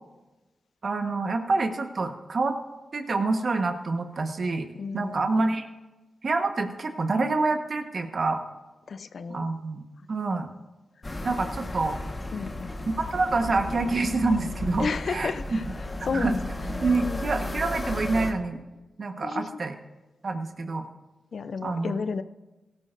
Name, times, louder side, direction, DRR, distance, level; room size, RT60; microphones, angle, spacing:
voice 1, 0.8-2.6 2.9-4.7 4.9-5.7 6.2-8.4 9.3-9.8 10.1-10.5 11.2-12.0 13.0-15.6 16.1-16.3 16.8-18.6 19.0-19.7 20.2-20.9 21.6-21.9, right 3 dB, 60° right, 6 dB, 1.2 m, -27 dB
voice 2, 4.7-5.4 8.9-9.5 11.3-11.5 12.3-12.7 14.8-15.6 16.0-16.4 17.0-17.2 19.2-19.5 21.3-22.2, left 5 dB, 70° left, 13 dB, 0.5 m, -32 dB
sound 1, 11.0-18.3, left 1 dB, 35° left, 1.3 m, -34 dB
16.5 x 13.5 x 2.6 m, 1.1 s
cardioid pair, 50°, 0 cm